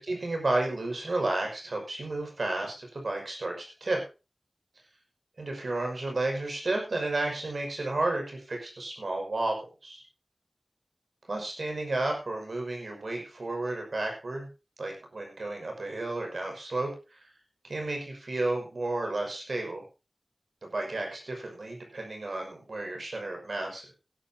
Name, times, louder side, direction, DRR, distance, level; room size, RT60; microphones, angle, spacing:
voice 1, 0.0-4.0 5.4-9.6 9.8-10.0 11.3-14.5 14.8-17.2 17.6-19.8 20.6-23.9, right 2 dB, 85° right, 2 dB, 6.0 m, -32 dB
17.0 x 11.5 x 2.9 m, 0.30 s
wide cardioid pair, 60°, 0 cm